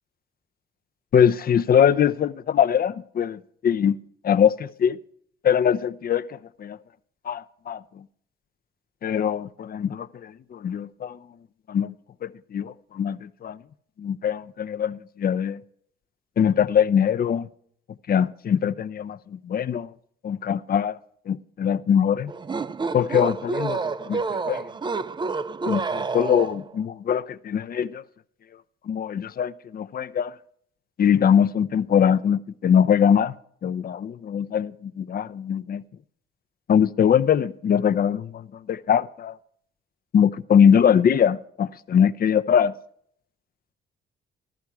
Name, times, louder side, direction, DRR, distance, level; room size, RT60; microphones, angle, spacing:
voice 1, 1.1-4.0 4.2-5.0 5.4-6.8 7.3-7.8 9.0-11.2 11.7-11.9 12.2-13.6 14.0-15.6 16.4-17.5 18.1-19.9 20.2-21.0 21.3-22.3 22.9-23.8 24.1-24.7 25.7-28.0 28.9-30.3 31.0-33.3 33.6-35.8 36.7-39.3 40.1-42.7, left 8 dB, 50° left, 0.7 m, -22 dB
sound 1, 22.3-26.8, right 4 dB, 25° right, 0.5 m, -29 dB
14.5 x 13.0 x 4.8 m
cardioid pair, 90°, 20 cm